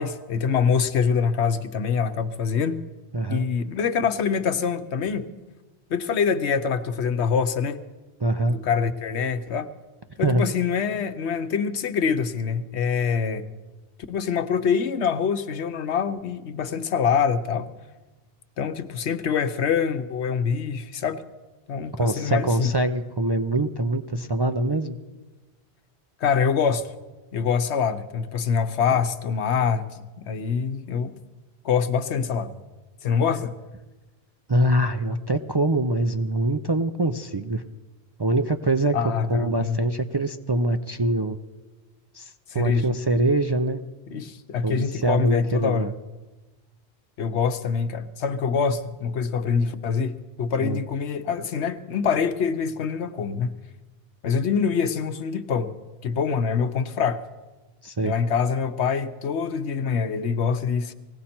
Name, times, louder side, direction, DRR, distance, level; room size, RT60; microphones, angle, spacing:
voice 1, 0.0-2.8 3.3-5.3 5.9-7.8 8.5-9.7 10.2-13.5 14.1-17.7 18.6-21.2 21.7-22.7 26.2-26.9 27.3-31.1 31.6-32.5 33.0-33.6 38.9-39.8 42.5-42.9 44.1-45.9 47.2-53.5 54.2-55.7 56.0-57.2 58.0-60.9, left 6 dB, 85° left, 1.1 m, -25 dB
voice 2, 3.1-3.4 8.2-8.6 10.2-10.4 22.0-25.0 34.5-37.6 38.2-39.0 39.3-41.4 42.1-43.8 44.6-45.9 50.6-50.8 57.8-58.1, right 1 dB, 40° right, 0.4 m, -24 dB
19.5 x 16.5 x 4.3 m
omnidirectional pair, 1.1 m